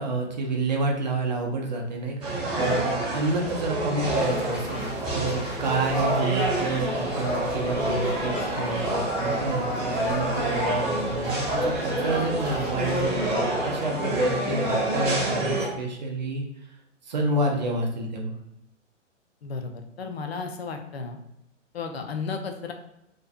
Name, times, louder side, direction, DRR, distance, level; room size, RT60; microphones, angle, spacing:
voice 1, 0.0-16.4 17.1-18.3, right 2 dB, 35° right, 1 dB, 0.4 m, -29 dB
sound 1, 2.2-15.7, right 1 dB, 20° right, 0.9 m, -27 dB
sound 2, 4.1-13.3, equal, 10° left, 0.7 m, -39 dB
voice 2, 19.4-21.2 21.7-22.7, left 4 dB, 55° left, 5 dB, 0.5 m, -33 dB
2.5 x 2.3 x 2.3 m, 0.85 s
figure-of-eight pair, 120°, 38 cm